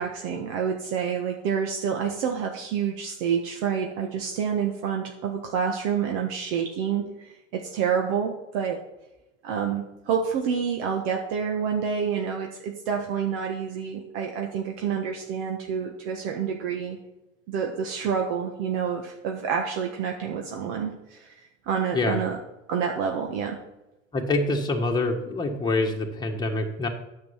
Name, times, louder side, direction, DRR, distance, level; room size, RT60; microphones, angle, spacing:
voice 1, 0.0-8.8 9.4-17.0 17.5-22.4 22.7-23.6, right 7 dB, 55° right, 2 dB, 1.5 m, -28 dB
voice 2, 24.1-26.9, left 2 dB, 10° left, 1 dB, 1.5 m, -25 dB
9.4 x 7.1 x 5.7 m, 0.94 s
hypercardioid pair, 85°, 38 cm